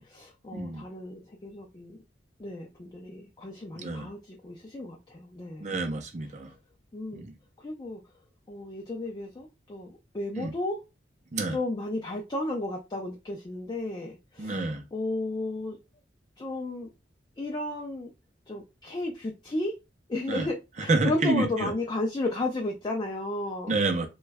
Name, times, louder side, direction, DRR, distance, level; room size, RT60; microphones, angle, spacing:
voice 1, 0.0-2.0 2.4-5.7 6.9-7.2 7.6-8.0 8.5-10.8 11.5-15.8 16.4-16.9 17.4-18.1 18.5-19.7 20.1-23.7, left 2 dB, 25° left, 0.4 m, -33 dB
voice 2, 0.5-0.8 3.8-4.1 5.6-6.5 7.1-7.3 10.4-10.5 11.3-11.6 14.4-14.8 20.3-20.5 20.8-21.7 23.7-24.1, right 2 dB, 40° right, 0.5 m, -28 dB
3.0 x 2.2 x 3.4 m
head